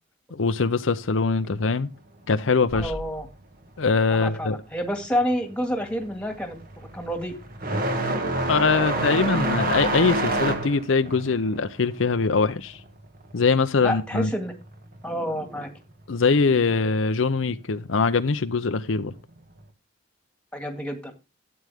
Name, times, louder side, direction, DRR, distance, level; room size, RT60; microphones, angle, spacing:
voice 1, 0.3-1.9 2.3-2.9 3.8-4.6 8.5-12.8 13.3-14.3 16.1-19.2, left 4 dB, 80° left, 0.7 m, -22 dB
voice 2, 2.7-3.3 4.1-7.3 8.8-9.4 13.8-14.5 15.0-15.7 20.5-21.1, equal, 5° left, 1.9 m, -29 dB
sound 1, 2.7-4.6, equal, 80° right, 6.5 m, -42 dB
sound 2, 5.0-5.3 5.7-14.0 14.3-15.3 16.3-16.4 17.2-17.3 19.0-19.2, right 2 dB, 45° right, 1.8 m, -27 dB
12.5 x 8.7 x 3.5 m
head